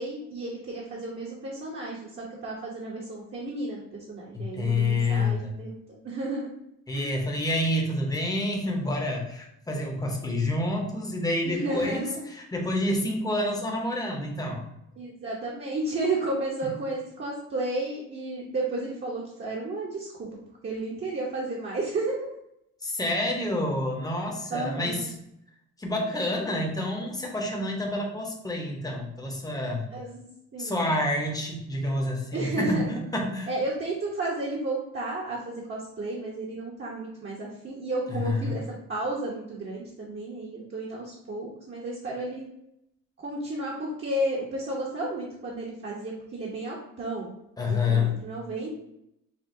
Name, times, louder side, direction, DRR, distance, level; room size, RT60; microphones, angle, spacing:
voice 1, 0.0-6.5 6.9-7.1 11.4-12.3 15.0-20.3 20.6-22.3 24.5-25.1 29.9-30.9 32.3-33.0 33.5-42.5 43.2-47.3 47.7-48.7, right 2 dB, 40° right, -5 dB, 1.0 m, -32 dB
voice 2, 4.3-5.5 6.9-14.7 16.6-16.7 22.8-25.1 25.8-29.9 30.6-33.5 38.1-38.6 47.6-48.2, left 2 dB, 10° left, 0 dB, 0.9 m, -28 dB
5.9 x 2.2 x 2.7 m, 0.80 s
cardioid pair, 90°, 30 cm